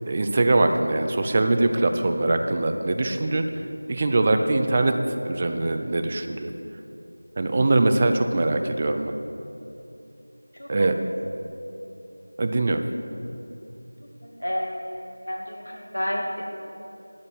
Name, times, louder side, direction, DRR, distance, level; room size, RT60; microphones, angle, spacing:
voice 1, 0.1-3.5 3.9-5.0 5.2-6.5 7.4-9.1 10.7-11.0 12.4-12.8, right 2 dB, 20° right, 7 dB, 0.5 m, -22 dB
voice 2, 14.2-16.4, equal, 85° left, -1 dB, 2.4 m, -31 dB
12.5 x 5.1 x 8.3 m, 2.8 s
figure-of-eight pair, 175°, 0 cm